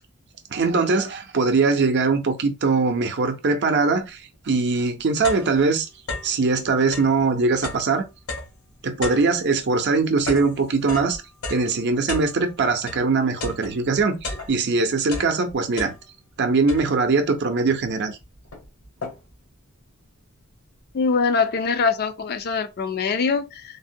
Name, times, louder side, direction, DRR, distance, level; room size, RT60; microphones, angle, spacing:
voice 1, 0.5-5.9 6.2-8.0 8.8-11.2 11.5-15.9 16.4-18.2, right 4 dB, 55° right, 0.6 m, -21 dB
sound 1, 4.3-4.4 4.8-6.4 6.8-13.1 13.4-14.8 15.0-16.3 16.7-17.2 17.8-17.9 18.2-19.5, left 2 dB, 85° left, 1.2 m, -35 dB
voice 2, 20.9-23.8, left 5 dB, 45° left, 0.4 m, -23 dB
3.3 x 2.1 x 2.7 m
head